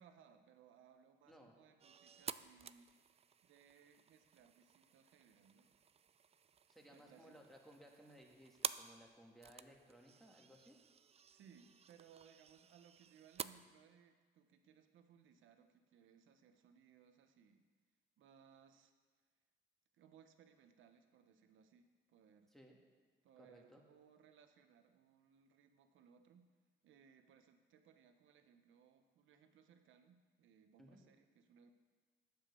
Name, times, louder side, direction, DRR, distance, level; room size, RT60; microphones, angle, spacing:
voice 1, 0.0-2.9 3.4-5.8 6.9-7.4 11.3-17.7 18.2-18.9 19.9-22.5 23.2-26.5 26.8-31.7, right 7 dB, 80° right, 7 dB, 1.0 m, -66 dB
sound 1, 1.8-13.5, right 7 dB, 30° right, 0.3 m, -51 dB
voice 2, 6.7-10.8 22.5-22.8 23.4-23.8 30.8-31.0, equal, ahead, 0 dB, 1.8 m, -61 dB
9.0 x 7.5 x 6.8 m, 1.4 s
cardioid pair, 90°, 20 cm